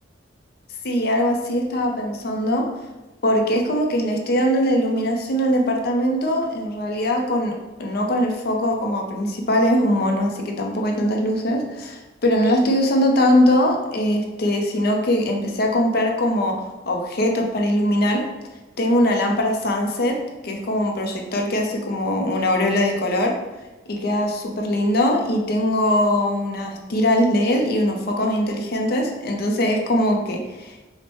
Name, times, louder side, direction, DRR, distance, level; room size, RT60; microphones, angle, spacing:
voice 1, 0.8-2.7 3.2-7.5 7.8-18.2 18.8-20.2 20.4-23.3 23.9-30.7, left 1 dB, 55° left, 2 dB, 0.5 m, -21 dB
4.2 x 2.1 x 3.0 m, 1.1 s
head